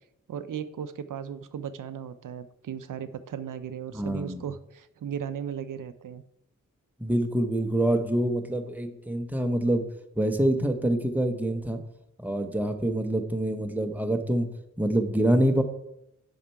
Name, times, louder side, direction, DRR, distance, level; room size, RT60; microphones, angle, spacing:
voice 1, 0.3-6.2, right 8 dB, 75° right, 12 dB, 0.5 m, -36 dB
voice 2, 3.9-4.4 7.0-9.9 10.2-11.8 12.2-14.5 14.8-15.6, right 1 dB, 5° right, 5 dB, 0.9 m, -26 dB
7.2 x 5.5 x 4.5 m, 0.82 s
cardioid pair, 55°, 32 cm